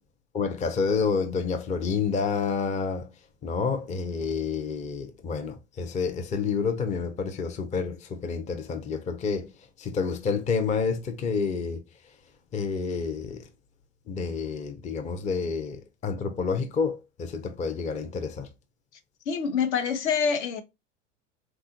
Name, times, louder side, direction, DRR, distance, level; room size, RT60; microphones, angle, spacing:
voice 1, 0.3-3.1 3.4-9.5 9.8-11.8 12.5-13.5 14.1-18.5, left 5 dB, 20° left, 0.5 m, -29 dB
voice 2, 19.3-20.6, left 6 dB, 65° left, 0.8 m, -26 dB
3.5 x 2.4 x 2.8 m
hypercardioid pair, 90°, 37 cm